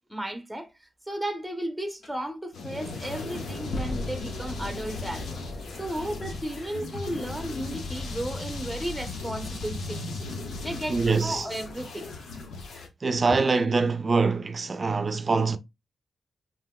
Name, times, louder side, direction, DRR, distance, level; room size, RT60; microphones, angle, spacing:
voice 1, 0.1-0.7 1.1-5.3 5.8-10.0 10.6-12.1 13.3-13.4, right 1 dB, 5° right, 0.7 m, -34 dB
sound 1, 2.0-2.2 2.8-7.0, left 1 dB, 55° left, 1.2 m, -40 dB
sound 2, 2.5-12.9, left 3 dB, 85° left, 1.0 m, -36 dB
voice 2, 10.9-11.5 13.0-15.6, right 4 dB, 35° right, 0.5 m, -24 dB
5.6 x 3.0 x 2.2 m
wide cardioid pair, 125°, 0 cm